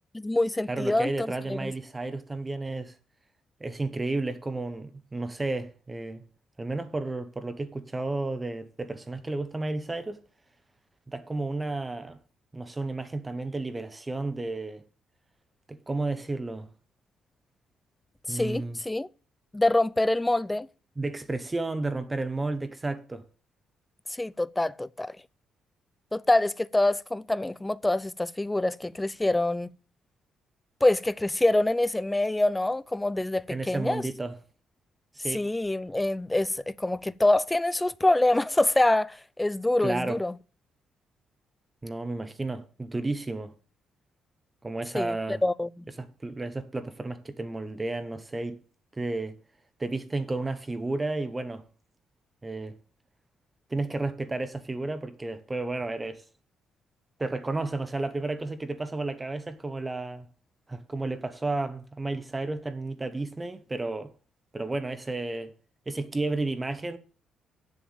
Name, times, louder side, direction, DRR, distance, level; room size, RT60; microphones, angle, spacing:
voice 1, 0.1-1.7 18.3-19.1 19.5-20.7 24.1-25.2 26.1-29.7 30.8-34.0 35.3-40.3 44.9-45.8, left 2 dB, 10° left, 0.4 m, -25 dB
voice 2, 0.7-3.0 3.6-6.2 6.6-10.2 11.1-12.2 12.5-14.8 15.7-16.7 18.3-18.8 21.0-23.2 33.5-34.4 35.1-35.5 39.8-40.2 41.8-43.5 44.6-45.4 46.0-48.6 48.9-49.4 49.8-51.6 52.4-52.8 53.7-56.2 57.2-60.3 60.7-64.1 64.5-65.5 65.9-67.0, right 2 dB, 20° right, 0.9 m, -32 dB
7.3 x 6.9 x 7.1 m
cardioid pair, 90°, 0 cm